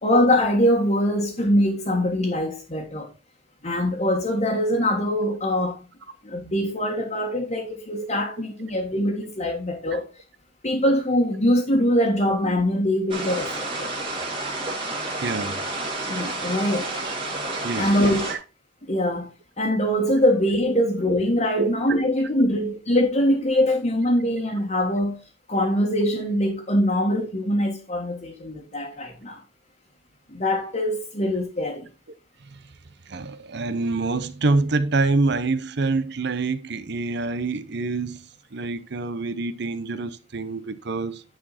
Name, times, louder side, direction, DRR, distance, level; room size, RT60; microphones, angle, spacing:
voice 1, 0.0-3.1 3.6-5.8 6.2-10.1 10.6-13.9 16.1-16.9 17.8-18.3 18.9-19.3 19.6-25.2 25.5-29.4 30.3-31.9, left 1 dB, 40° left, 1.6 m, -23 dB
sound 1, 13.1-18.4, right 2 dB, 30° right, 2.3 m, -30 dB
voice 2, 15.2-15.6 17.0-17.1 17.6-18.4 21.6-21.7 32.5-32.6 33.1-38.2 38.5-41.2, right 3 dB, 65° right, 0.8 m, -26 dB
10.0 x 4.9 x 4.2 m
head